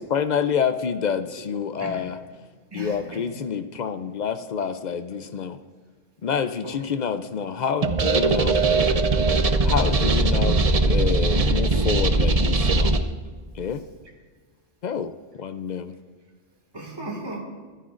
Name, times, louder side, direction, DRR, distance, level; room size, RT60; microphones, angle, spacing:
voice 1, 0.1-2.2 2.7-5.6 6.2-8.6 9.6-12.9 13.5-13.8 14.8-16.0, left 7 dB, 55° left, 10 dB, 0.5 m, -27 dB
voice 2, 1.8-2.1 2.7-3.3 6.6-6.8 11.5-11.6 16.7-17.4, right 1 dB, 20° right, 0 dB, 2.0 m, -36 dB
sound 1, 7.8-13.0, right 2 dB, 40° right, 0.6 m, -20 dB
25.0 x 10.0 x 2.5 m, 1.5 s
omnidirectional pair, 1.3 m